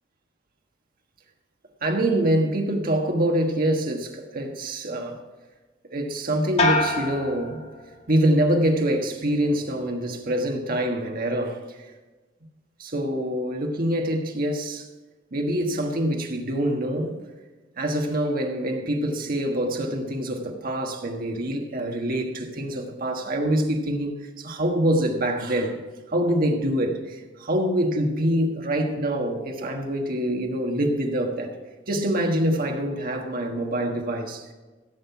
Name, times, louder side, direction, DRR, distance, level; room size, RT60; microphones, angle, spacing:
voice 1, 1.8-5.2 5.9-7.6 8.1-11.6 12.8-14.9 15.3-17.2 17.8-25.8 26.1-31.5 31.9-34.5, right 1 dB, 50° right, 1.5 m, -25 dB
sound 1, 6.6-8.3 8.7-9.3, left 2 dB, 35° left, 1.7 m, -27 dB
15.5 x 7.8 x 5.8 m
head